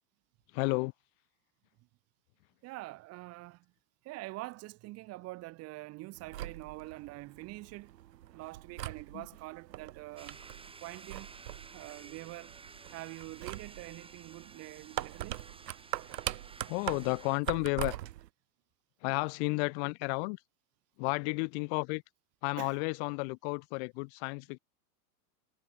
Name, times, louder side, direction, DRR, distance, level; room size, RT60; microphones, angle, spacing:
voice 1, 0.5-0.9 9.1-9.3 16.7-18.0 19.0-20.4 21.0-22.0 22.4-24.6, left 34 dB, 40° left, 0.6 m, -32 dB
voice 2, 2.6-3.6 4.0-7.9 8.3-10.4 10.8-11.3 11.7-12.6 12.9-15.4 22.6-22.8, right 20 dB, 30° right, 0.7 m, -45 dB
sound 1, 6.2-18.3, right 13 dB, 75° right, 2.6 m, -42 dB
sound 2, 10.2-17.4, right 4 dB, 10° right, 2.2 m, -53 dB
hypercardioid pair, 120°, 49 cm